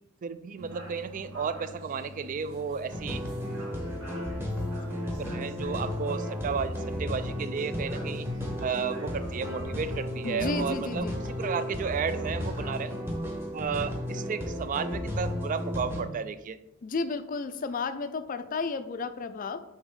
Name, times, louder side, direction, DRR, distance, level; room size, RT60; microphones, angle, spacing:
voice 1, 0.2-3.2 5.2-6.7 7.0-8.3 8.6-12.9 13.5-16.6, right 6 dB, 40° right, 13 dB, 0.3 m, -33 dB
sound 1, 0.6-12.9, left 1 dB, 85° right, 1.8 m, -46 dB
sound 2, 2.9-16.0, equal, 10° right, 0.9 m, -34 dB
voice 2, 10.2-11.2 16.8-19.6, left 4 dB, 40° left, 11 dB, 0.4 m, -32 dB
8.3 x 3.5 x 3.7 m, 0.91 s
head